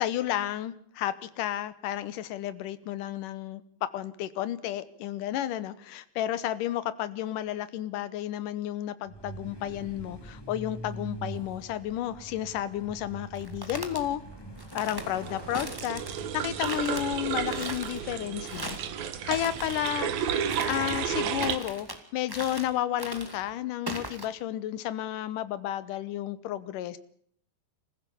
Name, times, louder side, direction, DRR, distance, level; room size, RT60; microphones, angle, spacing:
voice 1, 0.0-14.2 14.7-16.0 16.3-27.0, left 12 dB, 70° left, 2.1 m, -32 dB
Truck, 9.1-17.8, right 2 dB, 5° left, 2.3 m, -44 dB
sound 1, 13.3-14.0 14.6-15.1 15.5-16.2 16.6-17.0 17.5-18.0 18.4-18.9 19.3-19.9 20.5-21.1 21.4-22.0 22.3-22.7 23.0-23.4 23.9-24.2, right 1 dB, 15° right, 0.8 m, -39 dB
sound 2, 15.0-21.6, right 8 dB, 65° right, 1.9 m, -32 dB
26.5 x 15.5 x 7.0 m
omnidirectional pair, 4.8 m